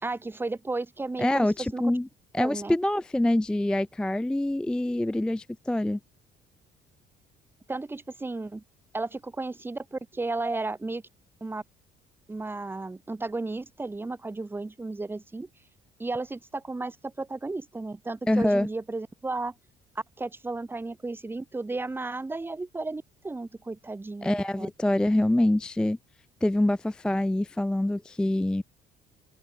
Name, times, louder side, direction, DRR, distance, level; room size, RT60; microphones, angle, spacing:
voice 1, 0.0-1.9 2.4-2.7 7.7-8.6 8.9-11.0 11.4-11.6 12.3-15.5 16.0-19.5 19.9-24.7, right 3 dB, 15° right, 1.0 m, -34 dB
voice 2, 1.2-2.1 2.3-6.0 18.3-18.7 24.2-26.0 26.4-28.6, left 1 dB, 5° left, 0.3 m, -25 dB
open air
cardioid pair, 110°, 17 cm